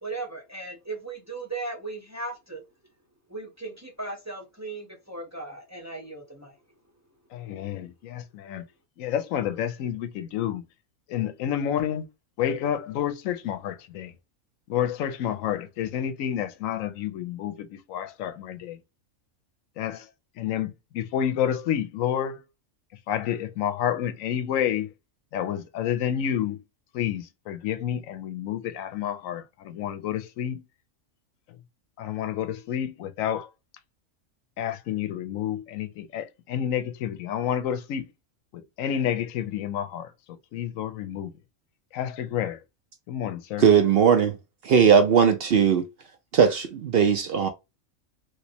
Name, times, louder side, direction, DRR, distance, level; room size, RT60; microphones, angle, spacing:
voice 1, 0.0-2.6 3.3-6.6, right 3 dB, 20° right, 0.5 m, -37 dB
voice 2, 7.3-8.6 9.0-10.6 11.1-12.1 12.4-14.1 14.7-18.8 19.8-20.1 20.4-22.4 23.1-24.9 25.3-26.6 26.9-30.6 32.0-33.5 34.6-38.1 38.5-41.3 41.9-42.6 43.1-43.7, left 10 dB, 85° left, 1.0 m, -29 dB
voice 3, 43.6-44.4 44.6-45.9 46.3-47.5, right 7 dB, 60° right, 0.7 m, -19 dB
3.2 x 3.0 x 2.7 m
omnidirectional pair, 1.4 m